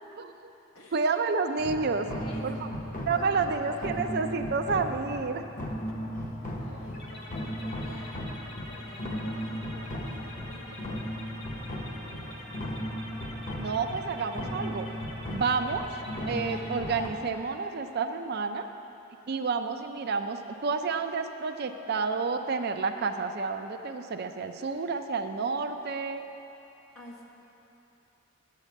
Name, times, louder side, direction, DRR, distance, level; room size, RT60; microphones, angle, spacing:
voice 1, 0.2-0.5 0.9-2.1 2.4-2.5 3.1-5.4 13.6-14.9 15.3-15.9 16.3-18.7 19.3-26.2, right 4 dB, 50° right, 6 dB, 0.5 m, -30 dB
voice 2, 0.7-1.1 2.2-3.8 4.3-4.6 5.9-6.0 6.6-8.2 8.6-12.7 26.9-27.2, left 1 dB, 80° left, -1 dB, 1.5 m, -49 dB
sound 1, 1.6-17.1, equal, 40° left, 1.0 m, -36 dB
sound 2, 6.9-16.7, left 1 dB, 60° left, 1.8 m, -45 dB
9.1 x 6.6 x 8.4 m, 3.0 s
head